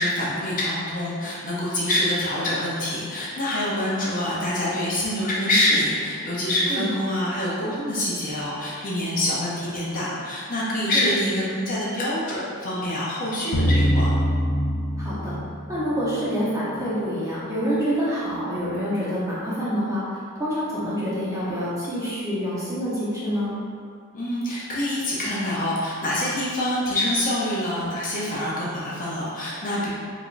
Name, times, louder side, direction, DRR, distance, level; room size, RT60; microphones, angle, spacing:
voice 1, 0.0-14.2 24.1-29.9, left 1 dB, 35° left, -7 dB, 0.6 m, -25 dB
voice 2, 10.9-11.3 15.0-15.4 15.7-23.5, equal, 15° right, -9 dB, 0.8 m, -27 dB
sound 1, 13.5-16.6, equal, 85° left, 0.5 m, -24 dB
4.8 x 2.5 x 2.5 m, 2.3 s
head